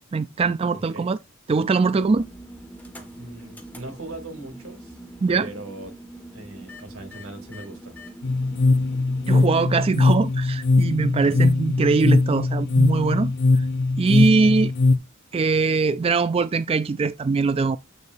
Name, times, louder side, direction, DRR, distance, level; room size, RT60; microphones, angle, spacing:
voice 1, 0.1-1.2 1.5-2.3 5.2-5.5 9.3-13.6 14.0-14.7 15.3-17.8, right 4 dB, 25° right, 0.3 m, -22 dB
voice 2, 0.7-1.1 3.2-5.0 5.3-6.0 6.3-7.9 11.3-11.4 14.4-14.6, right 2 dB, 80° right, 2.5 m, -39 dB
sound 1, 1.9-9.3, right 1 dB, 10° left, 1.6 m, -43 dB
sound 2, 8.2-15.0, left 3 dB, 60° left, 0.7 m, -20 dB
8.4 x 6.7 x 2.6 m
head